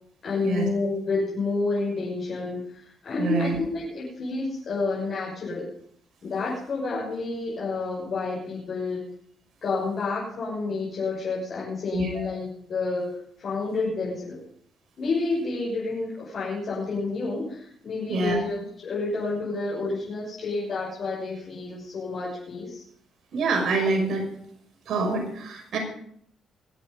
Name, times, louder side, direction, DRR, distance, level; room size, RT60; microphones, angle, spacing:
voice 1, 0.2-5.7 6.2-9.0 9.6-14.4 15.0-22.8, left 3 dB, 55° left, -7 dB, 6.2 m, -29 dB
voice 2, 3.2-3.6 11.9-12.3 18.1-18.4 23.3-24.2 24.9-25.8, right 3 dB, 65° right, 1 dB, 6.2 m, -26 dB
23.5 x 8.0 x 5.3 m, 0.65 s
cardioid pair, 90°, 0 cm